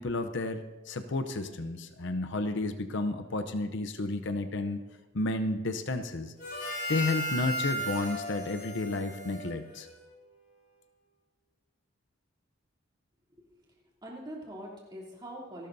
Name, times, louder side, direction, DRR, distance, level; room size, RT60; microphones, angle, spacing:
voice 1, 0.0-4.8 5.1-6.3 6.9-9.9, left 2 dB, 60° left, 7 dB, 0.7 m, -32 dB
Harmonica, 6.4-10.2, right 1 dB, 45° left, 5.5 m, -36 dB
voice 2, 13.3-13.7 14.0-15.7, right 1 dB, 20° right, -4 dB, 3.0 m, -44 dB
27.5 x 12.0 x 2.7 m, 1.2 s
head